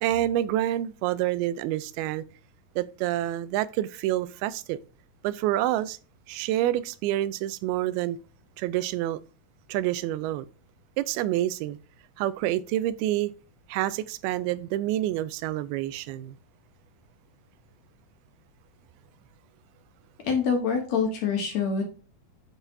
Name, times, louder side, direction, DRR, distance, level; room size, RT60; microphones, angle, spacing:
voice 1, 0.0-2.2 2.8-4.8 5.2-6.0 6.3-8.2 8.6-9.2 9.7-10.5 11.0-11.8 12.2-13.3 13.7-16.4, right 14 dB, 90° right, 2.5 m, -27 dB
voice 2, 20.2-21.8, left 5 dB, 60° left, 2.0 m, -25 dB
11.0 x 4.0 x 2.6 m
omnidirectional pair, 4.3 m